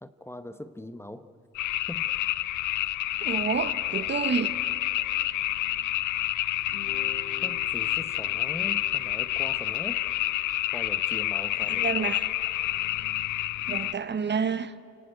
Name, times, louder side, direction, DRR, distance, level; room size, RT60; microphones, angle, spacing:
voice 1, 0.0-1.3 1.9-2.1 7.4-10.1 10.7-12.2, left 1 dB, 10° left, 0.8 m, -41 dB
sound 1, 1.5-13.9, left 15 dB, 80° left, 0.6 m, -28 dB
voice 2, 3.2-4.5 11.7-12.3 13.7-14.7, right 6 dB, 35° right, 0.9 m, -29 dB
Guitar, 6.7-11.3, left 5 dB, 50° left, 2.1 m, -48 dB
28.0 x 18.5 x 9.4 m
cardioid pair, 90°, 30 cm